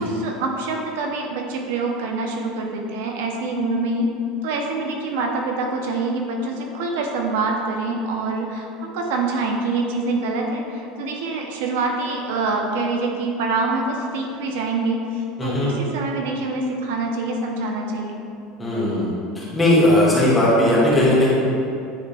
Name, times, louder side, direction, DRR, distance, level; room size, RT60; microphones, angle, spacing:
voice 1, 0.0-4.1 4.4-18.2, right 3 dB, 75° right, 1 dB, 0.8 m, -25 dB
voice 2, 15.4-15.7 18.6-21.3, left 1 dB, 10° left, -8 dB, 1.4 m, -18 dB
9.7 x 3.5 x 3.4 m, 2.6 s
cardioid pair, 175°, 0 cm